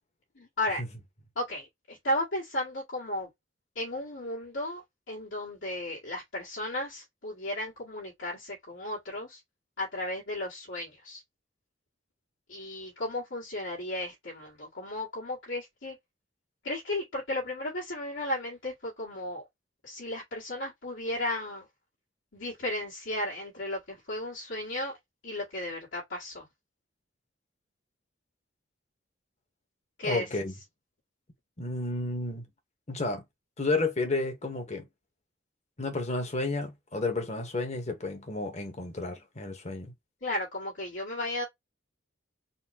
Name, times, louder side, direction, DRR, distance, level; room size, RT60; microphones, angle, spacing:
voice 1, 0.4-0.8 1.4-3.3 3.8-9.4 9.8-11.2 12.5-16.0 16.6-19.4 19.8-21.7 22.3-25.0 25.2-26.5 30.0-30.4 40.2-41.4, left 1 dB, 70° left, 1.8 m, -34 dB
voice 2, 30.0-30.5 31.6-32.5 32.9-33.2 33.6-34.9 35.8-39.9, left 2 dB, 35° left, 1.2 m, -31 dB
4.2 x 2.2 x 4.2 m
head